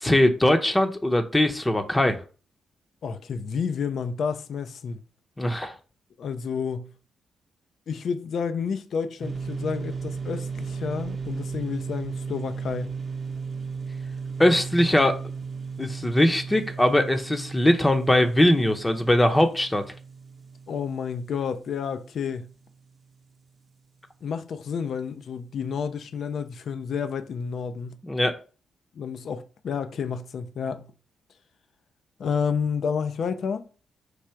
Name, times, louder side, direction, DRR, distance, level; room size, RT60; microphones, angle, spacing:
voice 1, 0.0-2.2 5.4-5.7 14.4-15.2 15.8-19.8 28.0-28.3, left 1 dB, 15° left, 0.7 m, -21 dB
voice 2, 3.0-5.0 6.2-6.9 7.9-13.0 20.7-22.5 24.2-28.0 29.0-30.9 32.2-33.6, left 6 dB, 65° left, 0.4 m, -30 dB
sound 1, 9.2-22.7, right 5 dB, 40° right, 0.7 m, -36 dB
4.7 x 2.4 x 4.3 m
cardioid pair, 65°, 0 cm